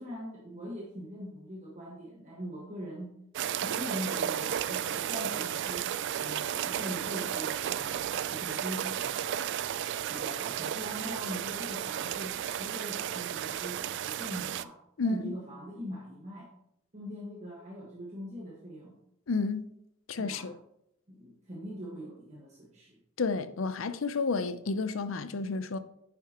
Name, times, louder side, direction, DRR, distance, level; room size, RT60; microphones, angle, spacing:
voice 1, 0.0-3.1 3.6-5.9 6.2-9.4 10.1-16.5 16.9-18.9 20.2-20.5 21.1-23.0, equal, 35° right, 1.5 m, -42 dB
sound 1, 3.3-14.6, right 10 dB, 60° right, 0.3 m, -33 dB
voice 2, 15.0-15.3 19.3-19.7 20.1-20.6 23.2-25.8, left 4 dB, 75° left, 0.6 m, -31 dB
9.6 x 7.0 x 3.0 m
head